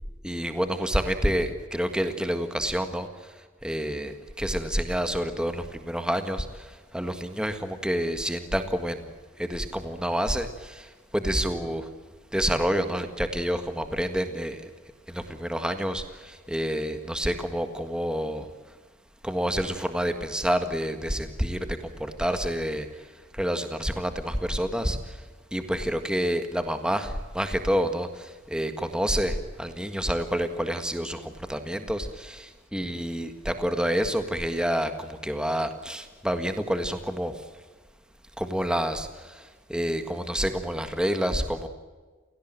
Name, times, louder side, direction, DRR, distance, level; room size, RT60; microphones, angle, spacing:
voice 1, 0.2-3.1 3.6-9.0 9.4-11.9 12.3-14.7 15.1-18.5 19.2-22.9 23.3-25.2 25.5-37.3 38.4-39.4 39.7-41.7, equal, 5° right, 7 dB, 1.7 m, -28 dB
29.5 x 17.5 x 9.0 m, 1.3 s
head